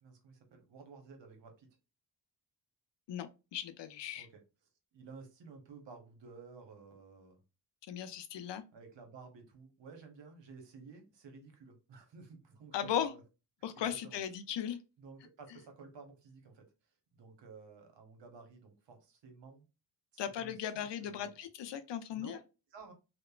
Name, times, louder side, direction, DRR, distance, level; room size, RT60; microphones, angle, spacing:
voice 1, 0.0-1.7 4.2-4.4 4.9-7.4 8.7-13.2 13.8-14.2 15.0-16.6 17.1-19.6 20.1-21.3 22.1-22.4 22.7-22.9, right 4 dB, 80° right, 0.9 m, -54 dB
voice 2, 3.1-4.3 7.9-8.6 12.7-13.1 13.6-14.8 20.2-22.4, left 9 dB, 75° left, 0.5 m, -37 dB
2.9 x 2.1 x 2.3 m
cardioid pair, 70°, 43 cm